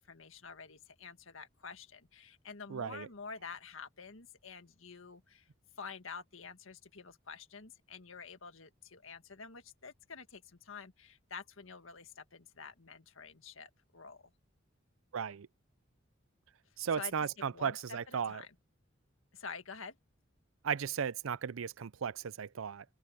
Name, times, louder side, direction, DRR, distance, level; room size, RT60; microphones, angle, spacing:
voice 1, 0.0-5.5 5.8-14.3 16.9-17.1 17.5-18.5 19.3-19.9, left 5 dB, 80° left, 1.7 m, -48 dB
voice 2, 2.7-3.1 15.1-15.5 16.8-18.4 20.6-22.8, right 7 dB, 80° right, 0.5 m, -36 dB
head